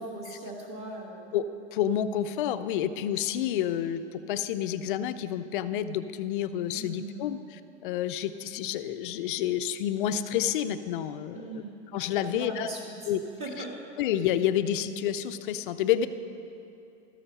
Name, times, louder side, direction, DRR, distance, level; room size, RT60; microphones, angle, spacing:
voice 1, 0.0-1.3 6.7-7.3 11.3-11.8 12.1-13.1 13.4-13.7, right 2 dB, 20° right, 0 dB, 1.4 m, -39 dB
voice 2, 1.3-7.4 7.8-11.6 11.9-12.7 13.1-13.2 14.0-16.1, left 10 dB, 50° left, 11 dB, 0.5 m, -29 dB
12.5 x 6.8 x 5.6 m, 2.8 s
supercardioid pair, 160°, 35 cm